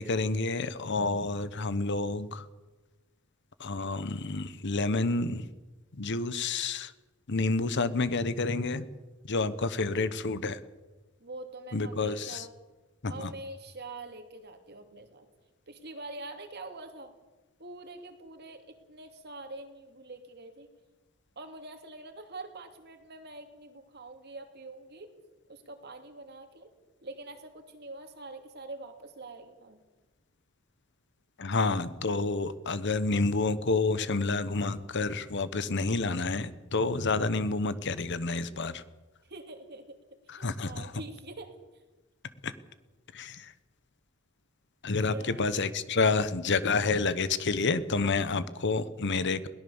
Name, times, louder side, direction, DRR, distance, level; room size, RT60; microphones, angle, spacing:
voice 1, 0.0-2.4 3.6-5.5 5.9-6.9 7.3-8.8 9.2-10.6 11.7-12.5 13.0-13.3 31.4-38.8 40.3-41.0 42.4-42.5 43.1-43.5 44.8-49.5, left 3 dB, 55° left, 14 dB, 1.0 m, -29 dB
voice 2, 11.2-12.5 13.1-15.3 15.7-17.1 17.6-20.7 21.4-25.1 25.5-26.7 27.0-29.8 39.3-40.0 40.3-41.5 45.1-45.8, right 2 dB, 50° right, 6 dB, 2.7 m, -45 dB
21.5 x 18.0 x 7.1 m, 1.2 s
head